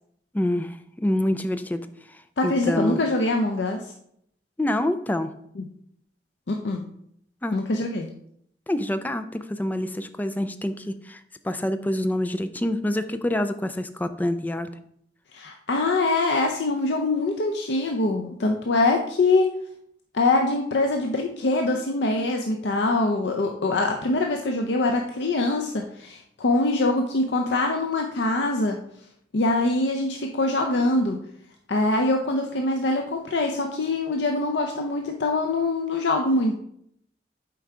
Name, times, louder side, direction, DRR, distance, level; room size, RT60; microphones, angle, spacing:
voice 1, 0.3-1.9 2.4-3.0 4.6-5.3 7.4-7.6 8.7-14.8, left 1 dB, 10° left, 10 dB, 0.3 m, -26 dB
voice 2, 2.4-3.8 5.6-5.7 6.5-6.8 7.5-8.1 15.3-19.5 20.1-28.8 29.3-31.2 31.7-36.6, left 2 dB, 80° left, 3 dB, 0.6 m, -24 dB
7.7 x 4.6 x 3.6 m, 0.71 s
head